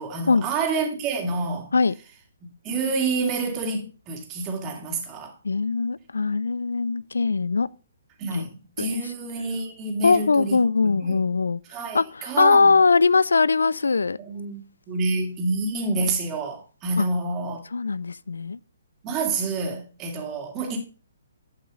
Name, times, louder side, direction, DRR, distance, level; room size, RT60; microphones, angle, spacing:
voice 1, 0.0-1.7 2.6-5.3 8.2-11.2 11.7-12.7 14.3-17.6 19.0-20.8, right 3 dB, 25° right, 2.6 m, -28 dB
voice 2, 5.4-7.7 8.3-8.5 8.8-9.0 10.0-11.6 11.9-14.2 17.0-17.1 17.7-18.6, left 4 dB, 70° left, 0.4 m, -21 dB
11.5 x 5.4 x 4.0 m
figure-of-eight pair, 130°, 0 cm